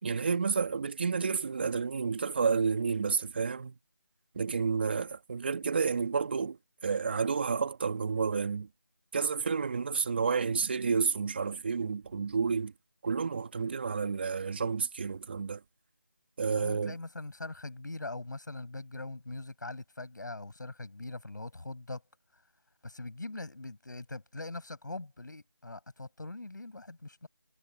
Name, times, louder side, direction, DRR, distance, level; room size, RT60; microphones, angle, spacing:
voice 1, 0.0-3.7 4.4-8.7 9.1-12.7 13.0-15.6 16.4-16.9, right 5 dB, 30° right, 2.1 m, -30 dB
voice 2, 16.5-22.0 22.8-27.3, left 2 dB, 65° left, 7.8 m, -42 dB
figure-of-eight pair, 170°, 11 cm